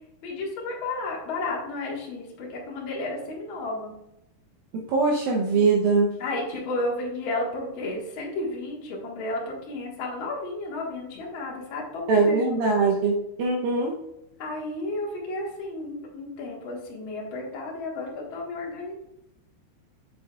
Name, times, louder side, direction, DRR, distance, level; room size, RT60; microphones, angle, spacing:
voice 1, 0.2-3.9 6.2-12.7 14.4-18.9, left 2 dB, 70° left, -3 dB, 1.2 m, -32 dB
voice 2, 4.9-6.1 12.1-13.9, right 4 dB, 80° right, -1 dB, 2.1 m, -22 dB
7.2 x 7.1 x 2.3 m, 0.86 s
omnidirectional pair, 5.1 m